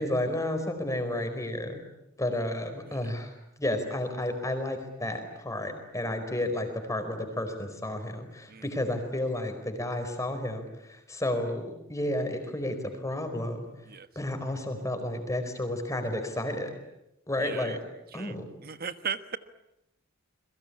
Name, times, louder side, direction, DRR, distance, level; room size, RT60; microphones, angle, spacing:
voice 1, 0.0-1.8 2.2-3.3 3.6-13.7 14.1-16.7 17.3-17.8 18.1-18.4, left 1 dB, 15° left, 7 dB, 4.6 m, -31 dB
voice 2, 17.4-17.8 18.1-18.4 18.6-19.4, right 7 dB, 45° right, 11 dB, 1.3 m, -36 dB
30.0 x 22.5 x 8.7 m, 0.87 s
head